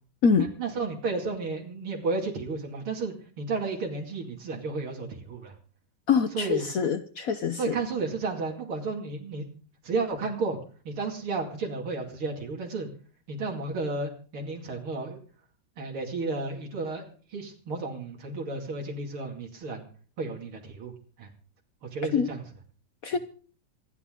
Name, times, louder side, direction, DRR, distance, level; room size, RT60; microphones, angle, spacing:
voice 1, 0.4-5.5 6.3-6.6 7.6-9.5 9.8-10.6 10.8-12.9 13.3-15.2 15.8-17.0 17.3-19.8 20.2-20.9 21.2-21.3 21.8-22.4, right 3 dB, 90° right, 0 dB, 3.3 m, -32 dB
voice 2, 6.1-7.8 22.1-22.3 23.0-23.2, left 6 dB, 60° left, 9 dB, 0.9 m, -24 dB
26.5 x 9.7 x 3.7 m, 0.42 s
omnidirectional pair, 2.3 m